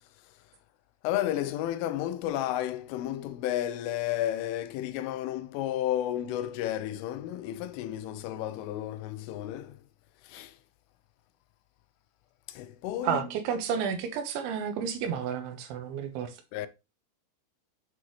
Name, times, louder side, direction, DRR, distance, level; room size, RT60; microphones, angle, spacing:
voice 1, 1.0-9.8 10.3-10.5 12.5-13.3 16.5-16.7, left 12 dB, 85° left, 3.2 m, -32 dB
voice 2, 13.0-16.4, right 7 dB, 80° right, 3.4 m, -31 dB
8.7 x 6.1 x 3.1 m
omnidirectional pair, 5.5 m